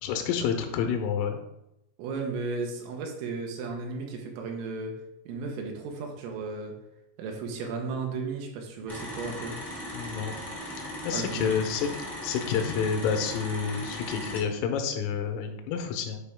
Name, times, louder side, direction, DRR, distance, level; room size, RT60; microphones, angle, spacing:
voice 1, 0.0-1.4 9.9-10.3 10.8-11.9 12.2-16.2, left 7 dB, 85° left, 5 dB, 3.3 m, -29 dB
voice 2, 2.0-5.0 5.3-6.7 7.2-9.6 11.1-11.6, right 4 dB, 80° right, 2 dB, 3.6 m, -34 dB
sound 1, 8.9-14.4, left 1 dB, ahead, 0.3 m, -38 dB
9.5 x 4.9 x 3.5 m, 0.85 s
omnidirectional pair, 5.9 m